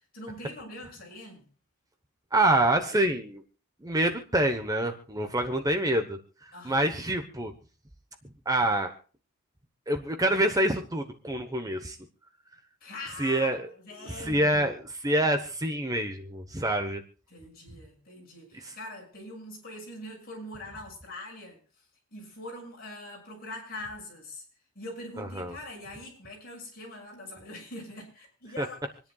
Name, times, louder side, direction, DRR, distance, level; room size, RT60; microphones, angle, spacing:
voice 1, 0.1-1.5 6.5-6.9 12.8-14.7 17.3-21.6 22.1-24.4 24.7-28.9, left 1 dB, 45° left, -2 dB, 6.5 m, -43 dB
voice 2, 2.3-3.4 3.8-7.5 8.5-8.9 9.9-12.0 13.2-13.7 14.1-14.8 15.0-17.0 18.6-18.7 25.2-25.5 28.6-28.7, right 1 dB, 15° right, 6 dB, 1.0 m, -26 dB
27.0 x 10.5 x 2.3 m, 0.37 s
head